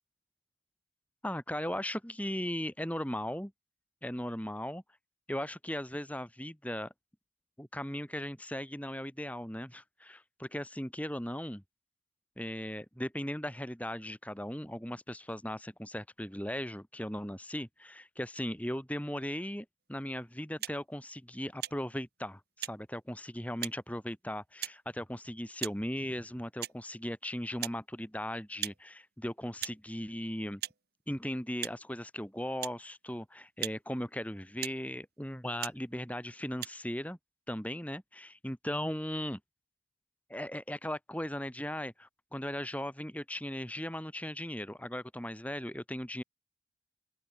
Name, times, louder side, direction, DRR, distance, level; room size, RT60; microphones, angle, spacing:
voice 1, 1.2-3.5 4.0-4.8 5.3-6.9 7.6-11.6 12.4-30.6 31.1-37.2 37.5-39.4 40.3-46.2, equal, 5° left, 4.6 m, -38 dB
sound 1, 20.6-20.8 21.6-21.8 22.6-22.8 23.6-23.8 24.6-24.8 25.6-25.8 26.6-26.8 27.6-27.8 28.6-28.8 29.6-29.8 30.6-30.8 31.6-31.8 32.6-32.8 33.6-33.8 34.6-34.8 35.6-35.8 36.6-36.7, right 13 dB, 55° right, 1.9 m, -38 dB
open air
head